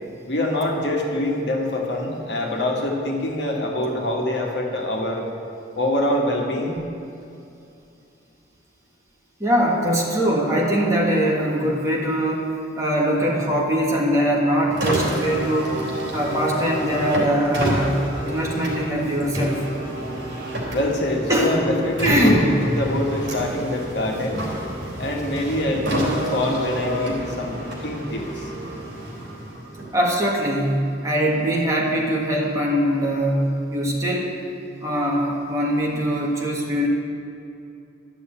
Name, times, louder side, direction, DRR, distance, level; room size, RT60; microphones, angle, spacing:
voice 1, 0.3-5.3 5.8-6.8 20.7-24.5 25.0-28.5, left 1 dB, 65° left, 0 dB, 1.7 m, -25 dB
voice 2, 9.4-12.5 12.8-15.8 16.1-19.7 21.3-21.7 22.0-22.5 29.9-34.3 34.8-36.9, equal, 15° right, -3 dB, 1.8 m, -22 dB
Car, 14.7-30.1, right 1 dB, 65° right, 3.7 m, -29 dB
12.5 x 7.1 x 8.8 m, 2.7 s
head